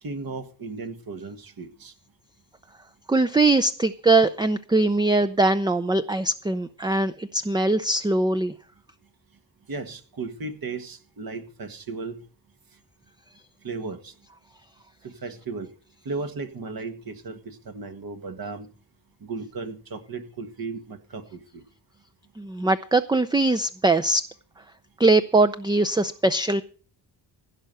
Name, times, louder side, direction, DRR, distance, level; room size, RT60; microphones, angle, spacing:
voice 1, 0.0-1.9 9.7-12.2 13.6-14.1 15.0-15.7 16.0-18.7 19.2-21.6, right 4 dB, 55° right, 1.8 m, -35 dB
voice 2, 3.1-8.5 22.4-24.3 25.0-26.6, right 2 dB, 10° right, 0.5 m, -21 dB
16.0 x 5.6 x 7.7 m
cardioid pair, 85°, 43 cm